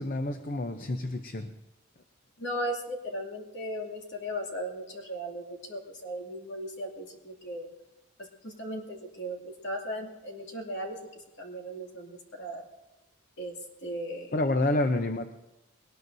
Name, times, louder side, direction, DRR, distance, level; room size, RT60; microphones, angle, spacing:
voice 1, 0.0-1.5 14.3-15.3, left 2 dB, 40° left, 7 dB, 0.7 m, -28 dB
voice 2, 2.4-7.7 8.2-11.0 11.4-12.6 13.4-13.5 13.8-14.3, equal, 55° left, 1 dB, 2.5 m, -37 dB
21.0 x 19.0 x 2.7 m, 0.97 s
head